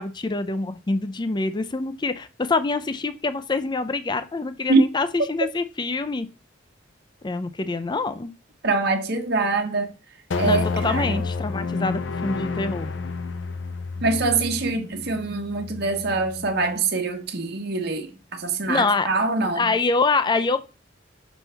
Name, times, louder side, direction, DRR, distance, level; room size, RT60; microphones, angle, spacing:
voice 1, 0.0-6.3 7.2-8.3 10.4-12.9 18.7-19.1 19.5-20.6, left 3 dB, 25° left, 0.5 m, -25 dB
voice 2, 8.6-9.9 10.3-11.2 14.0-19.7, right 3 dB, 60° right, 1.2 m, -24 dB
sound 1, 10.3-16.8, left 4 dB, 70° left, 0.6 m, -30 dB
6.2 x 5.5 x 3.4 m
head